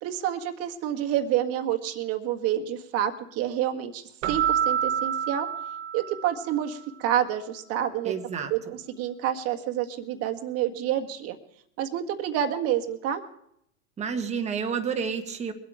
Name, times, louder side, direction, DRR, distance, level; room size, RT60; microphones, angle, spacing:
voice 1, 0.0-5.5 5.9-8.1 8.5-11.4 11.8-13.2, right 11 dB, 40° right, 5 dB, 1.6 m, -28 dB
Keyboard (musical), 4.2-6.6, right 9 dB, 60° right, 1.3 m, -28 dB
voice 2, 8.0-8.5 14.0-15.5, right 6 dB, 15° right, 4 dB, 1.5 m, -30 dB
22.5 x 8.6 x 4.8 m, 0.72 s
hypercardioid pair, 125°, 38 cm